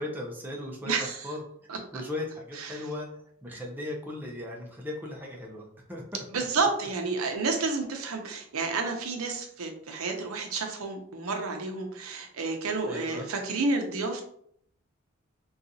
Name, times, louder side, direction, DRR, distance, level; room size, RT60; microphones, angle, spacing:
voice 1, 0.0-0.9 1.2-1.4 1.9-3.1 3.4-6.4 12.8-13.3, left 1 dB, 10° right, -1 dB, 0.4 m, -37 dB
voice 2, 0.9-1.3 1.7-2.0 2.5-2.9 6.3-14.2, right 3 dB, 80° right, 4 dB, 0.6 m, -30 dB
3.8 x 2.3 x 2.6 m, 0.67 s
head